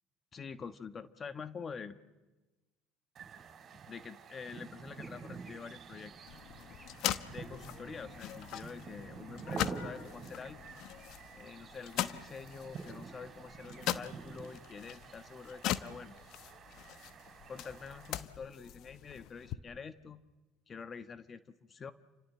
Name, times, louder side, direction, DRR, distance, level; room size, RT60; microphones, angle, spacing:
voice 1, 0.3-2.0 3.9-6.1 7.3-10.6 11.3-16.1 17.5-20.2 20.7-21.9, left 5 dB, 35° left, 11 dB, 1.3 m, -46 dB
sound 1, 3.1-18.2, right 5 dB, 45° right, 4.4 m, -48 dB
sound 2, 4.4-16.4, equal, 5° left, 8.0 m, -66 dB
sound 3, 6.3-19.5, left 12 dB, 60° left, 1.1 m, -41 dB
29.0 x 25.5 x 7.7 m, 1.2 s
hypercardioid pair, 70°, 0 cm